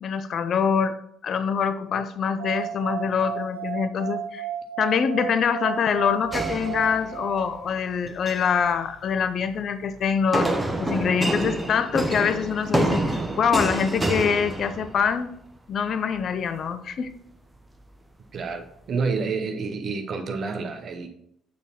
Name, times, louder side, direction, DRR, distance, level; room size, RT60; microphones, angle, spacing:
voice 1, 0.0-1.0 1.2-4.5 4.8-10.5 10.8-15.3 15.7-17.1, left 6 dB, 45° left, 10 dB, 0.5 m, -24 dB
sound 1, 2.4-7.9, right 10 dB, 70° right, 0.5 m, -34 dB
sound 2, 6.3-7.4 8.1-8.6 10.3-15.2, right 1 dB, 10° right, 1.0 m, -27 dB
voice 2, 18.3-21.1, right 4 dB, 45° right, 6 dB, 0.9 m, -29 dB
7.4 x 6.6 x 3.0 m, 0.71 s
figure-of-eight pair, 50°, 0 cm